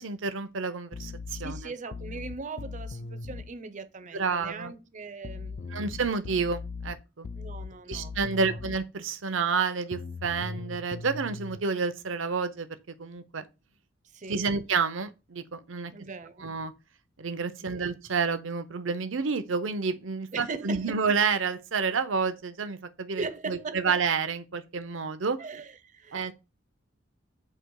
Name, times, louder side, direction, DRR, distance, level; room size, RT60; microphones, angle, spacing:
voice 1, 0.0-1.7 4.1-4.7 5.7-7.3 7.9-13.4 14.3-15.9 16.4-16.7 17.2-25.4 26.1-26.3, right 5 dB, 70° right, 0.8 m, -29 dB
sound 1, 0.9-3.5 5.2-8.9 9.9-11.6, left 4 dB, 40° left, 0.3 m, -39 dB
voice 2, 1.4-5.9 7.3-8.2 8.4-8.6 14.1-14.5 15.9-16.5 17.6-17.9 20.3-21.0 23.2-24.0 25.4-26.3, right 4 dB, 40° right, 0.6 m, -40 dB
7.7 x 2.9 x 4.7 m
head